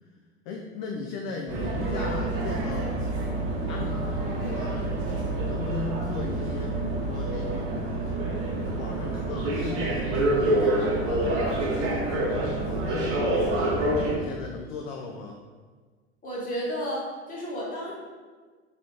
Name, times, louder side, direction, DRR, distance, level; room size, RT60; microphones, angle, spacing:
voice 1, 0.5-3.0 3.7-4.8 5.4-8.1 8.6-13.8 14.1-15.4, left 4 dB, 45° left, 1 dB, 0.4 m, -37 dB
sound 1, 1.5-14.2, right 2 dB, 40° right, 0.9 m, -27 dB
voice 2, 16.2-17.9, equal, 25° left, -5 dB, 1.2 m, -32 dB
3.6 x 3.4 x 2.7 m, 1.5 s
figure-of-eight pair, 70°, 33 cm